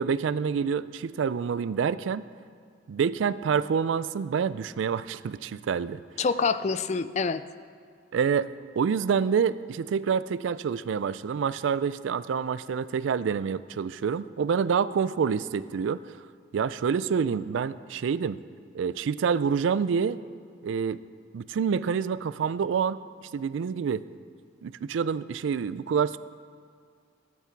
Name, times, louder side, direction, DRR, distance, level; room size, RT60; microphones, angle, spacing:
voice 1, 0.0-2.2 2.9-6.0 8.1-16.0 16.5-18.4 18.7-20.2 20.6-21.0 21.3-23.0 23.3-24.0 24.6-26.2, right 6 dB, 85° right, 16 dB, 0.3 m, -27 dB
voice 2, 6.2-7.4, left 5 dB, 35° left, 13 dB, 0.3 m, -26 dB
15.5 x 8.4 x 4.5 m, 2.2 s
head